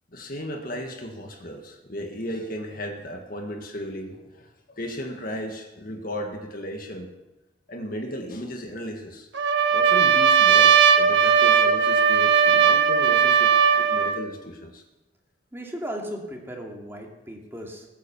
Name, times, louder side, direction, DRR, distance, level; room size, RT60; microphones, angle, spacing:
voice 1, 0.1-7.1 7.7-9.3 9.7-14.8, equal, 45° left, 3 dB, 1.8 m, -35 dB
Trumpet, 9.3-14.2, right 7 dB, 65° right, 1.4 m, -18 dB
voice 2, 15.5-17.9, equal, 10° right, 0 dB, 2.7 m, -36 dB
20.5 x 9.2 x 7.2 m, 1.0 s
head